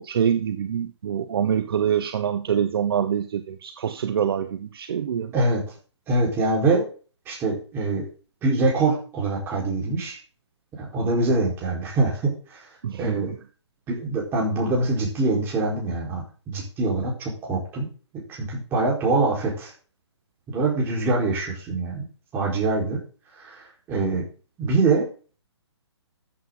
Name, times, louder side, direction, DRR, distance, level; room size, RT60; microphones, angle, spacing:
voice 1, 0.0-5.3 12.8-13.3, right 8 dB, 55° right, 9 dB, 1.1 m, -25 dB
voice 2, 6.1-6.8 7.3-8.1 8.4-10.2 10.7-12.6 13.0-13.3 13.9-17.9 18.4-19.7 20.5-22.0 22.3-23.0 23.4-24.2 24.6-25.1, right 3 dB, 15° right, -3 dB, 4.6 m, -24 dB
14.5 x 8.4 x 3.9 m, 0.37 s
hypercardioid pair, 160°, 15 cm